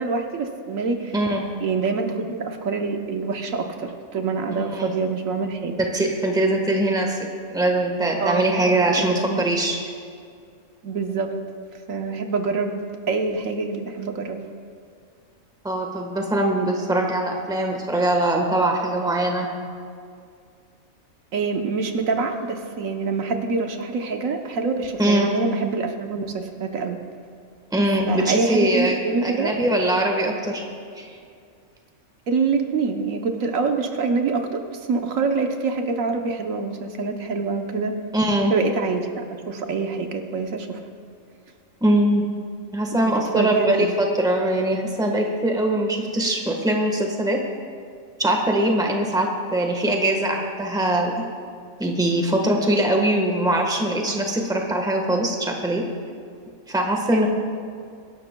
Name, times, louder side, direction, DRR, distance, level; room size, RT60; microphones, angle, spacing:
voice 1, 0.0-1.2 1.6-5.7 8.2-9.4 10.8-11.3 11.9-12.8 13.1-14.4 21.3-27.0 28.1-29.5 32.3-37.9 38.5-40.8 43.3-44.0 57.1-57.3, right 4 dB, 75° right, 4 dB, 1.3 m, -25 dB
voice 2, 1.1-1.5 4.5-4.9 5.8-9.8 15.6-19.5 25.0-25.3 27.7-30.6 31.0-31.2 38.1-38.5 41.8-42.2 42.7-47.4 48.2-51.1 51.8-55.8 56.7-57.3, right 1 dB, 5° right, 1 dB, 1.1 m, -22 dB
23.5 x 11.5 x 2.2 m, 2.3 s
omnidirectional pair, 1.4 m